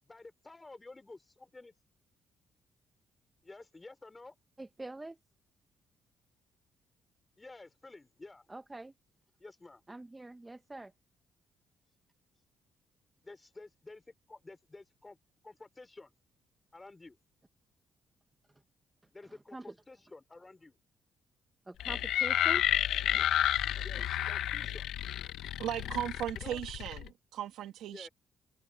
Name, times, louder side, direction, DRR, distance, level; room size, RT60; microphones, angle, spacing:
voice 1, 0.0-1.7 3.4-4.3 7.4-8.5 9.4-9.8 13.2-14.0 14.3-15.2 15.4-16.1 16.7-17.2 19.1-20.8 23.8-25.1 26.3-26.6 27.9-28.1, left 3 dB, 20° left, 5.0 m, -51 dB
voice 2, 4.6-5.2 8.5-8.9 9.9-10.9 19.5-19.7 21.7-22.6 23.0-23.3 23.7-24.0, right 2 dB, 15° right, 1.2 m, -45 dB
sound 1, 21.8-27.1, left 12 dB, 80° left, 1.0 m, -31 dB
voice 3, 25.6-28.1, right 11 dB, 80° right, 1.5 m, -37 dB
cardioid pair, 115°, 0 cm